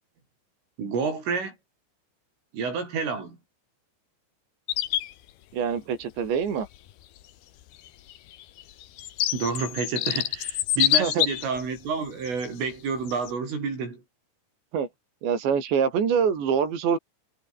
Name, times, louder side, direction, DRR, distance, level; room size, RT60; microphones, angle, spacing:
voice 1, 0.8-1.6 2.5-3.4 9.3-14.0, right 5 dB, 85° right, 10.5 m, -29 dB
sound 1, 4.7-5.1 6.7-6.8 7.9-11.6 12.2-12.5 13.1-13.3, left 13 dB, 65° left, 2.9 m, -26 dB
voice 2, 5.5-6.7 11.0-11.3 14.7-14.9 15.2-17.0, right 7 dB, 65° right, 6.5 m, -25 dB
omnidirectional pair, 5.6 m